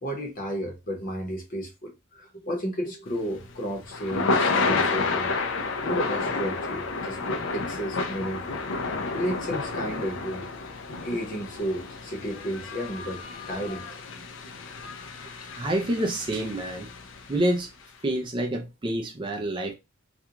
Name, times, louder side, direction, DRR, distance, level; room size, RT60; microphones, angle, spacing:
voice 1, 0.0-5.3 5.8-8.7 9.1-10.5 11.0-14.1, equal, 40° left, 0.9 m, -33 dB
Thunder / Rain, 3.2-17.4, left 3 dB, 65° left, 0.5 m, -30 dB
voice 2, 15.5-16.9 17.3-17.7 18.0-19.7, right 1 dB, 25° right, 0.4 m, -27 dB
2.5 x 2.3 x 2.8 m
head